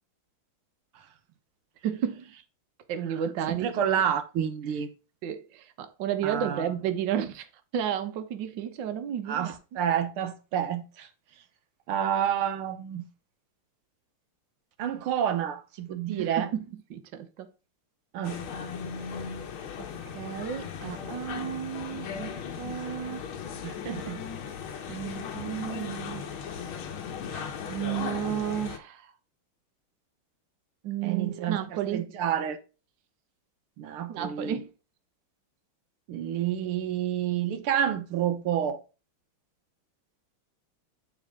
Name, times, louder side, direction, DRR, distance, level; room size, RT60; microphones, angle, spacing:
voice 1, 1.8-2.2 2.9-4.0 5.2-7.5 7.7-9.5 16.2-16.6 16.9-17.5 20.1-22.3 22.6-23.2 24.9-26.2 27.3-29.0 30.8-32.0 34.1-34.7, right 9 dB, 65° right, 1.6 m, -32 dB
voice 2, 3.1-4.9 6.2-6.7 9.3-11.1 11.9-13.1 14.8-16.5 18.1-18.4 23.6-24.2 31.0-32.6 33.8-34.6 36.1-38.8, right 9 dB, 85° right, 1.8 m, -29 dB
sound 1, 18.2-28.8, left 7 dB, 75° left, 1.9 m, -37 dB
8.8 x 4.7 x 3.5 m
omnidirectional pair, 2.3 m